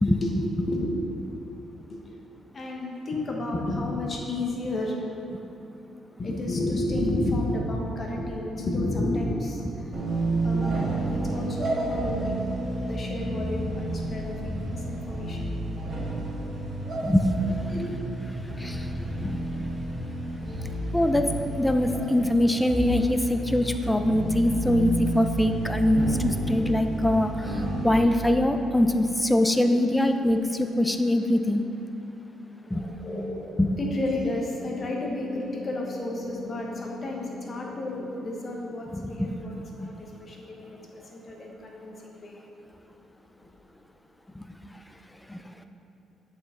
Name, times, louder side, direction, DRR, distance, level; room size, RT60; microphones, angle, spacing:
voice 1, 0.0-1.1 1.9-2.1 2.5-5.1 6.2-9.8 10.3-12.5 12.7-15.5 16.2-16.3 17.7-18.0 18.4-19.3 32.6-42.4 43.4-43.5, left 1 dB, 40° left, 0 dB, 1.1 m, -32 dB
sound 1, 9.9-27.9, right 2 dB, 45° right, 1.5 m, -30 dB
voice 2, 17.0-17.4 18.6-18.8 19.2-19.4 20.9-21.3 21.6-27.6 27.8-31.6 32.7-32.8 33.6-33.7 38.9-39.3 44.4-44.5 45.3-45.4, left 1 dB, 10° left, 7 dB, 0.4 m, -23 dB
8.0 x 4.7 x 3.7 m, 2.8 s
cardioid pair, 90°, 0 cm